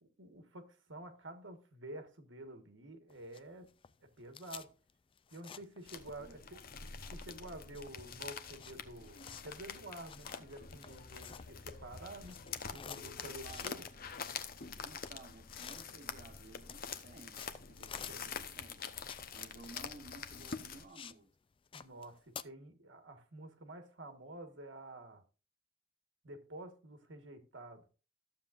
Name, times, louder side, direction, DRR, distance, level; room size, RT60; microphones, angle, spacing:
voice 1, 0.0-3.7 4.2-4.7 5.3-6.4 7.1-9.2 9.4-12.4 12.7-13.8 18.1-18.3 21.7-25.2 26.2-27.8, right 1 dB, 80° right, 1.5 m, -49 dB
sound 1, 3.1-6.4 6.7-11.8 12.1-21.2 21.5-22.4, left 7 dB, 30° left, 0.3 m, -52 dB
sound 2, 5.9-20.9, left 6 dB, 50° left, 0.8 m, -46 dB
voice 2, 6.2-6.7 13.2-13.9 14.8-17.4 17.7-18.8 19.3-21.3, right 2 dB, 50° right, 1.2 m, -55 dB
13.5 x 7.3 x 2.5 m
head